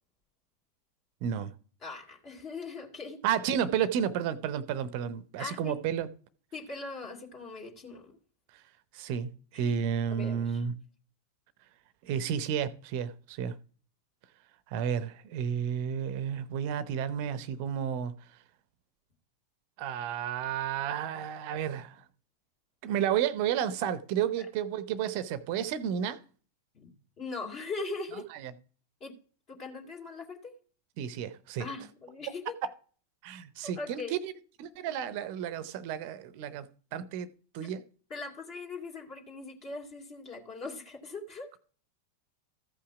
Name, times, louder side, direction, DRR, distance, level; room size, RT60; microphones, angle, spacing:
voice 1, 1.8-3.2 5.4-5.7 6.5-8.1 9.5-9.8 10.1-10.6 24.4-24.5 26.7-28.2 29.0-29.2 29.5-30.5 31.6-32.5 33.6-34.1 37.6-37.7 38.1-41.5, left 3 dB, 35° left, 2.3 m, -40 dB
voice 2, 3.2-6.1 8.5-8.6 8.9-10.7 12.0-13.6 14.7-18.1 19.8-22.0 22.8-26.2 28.1-28.5 31.0-31.7 33.2-34.3 34.6-37.3 37.5-37.8, right 8 dB, 45° right, 0.8 m, -32 dB
14.5 x 5.7 x 4.8 m
figure-of-eight pair, 90°, 0 cm